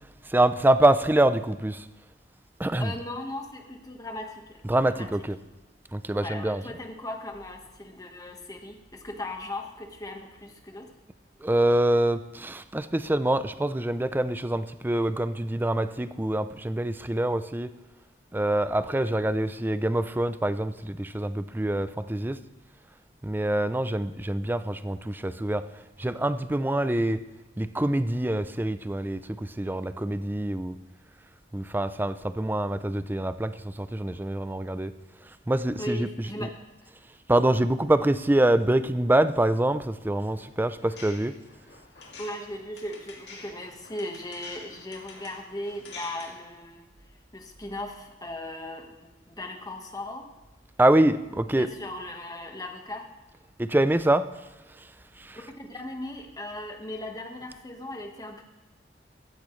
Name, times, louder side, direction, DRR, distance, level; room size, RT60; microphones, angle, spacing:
voice 1, 0.3-1.8 2.6-2.9 4.6-5.4 5.9-6.8 11.4-17.7 18.3-22.4 23.2-25.6 26.0-27.2 27.6-30.7 31.5-34.9 35.5-36.5 37.3-41.3 50.8-51.7 53.6-54.3 55.2-55.5, right 1 dB, 10° right, 12 dB, 0.4 m, -25 dB
voice 2, 2.6-5.1 6.2-10.9 35.8-36.5 36.8-36.9 42.0-46.9 47.3-48.9 49.3-50.3 51.6-53.1 55.6-58.4, left 1 dB, 20° left, 3 dB, 1.4 m, -38 dB
sound 1, 40.3-46.4, left 3 dB, 65° left, 2.6 m, -47 dB
14.5 x 13.5 x 3.2 m, 1.1 s
head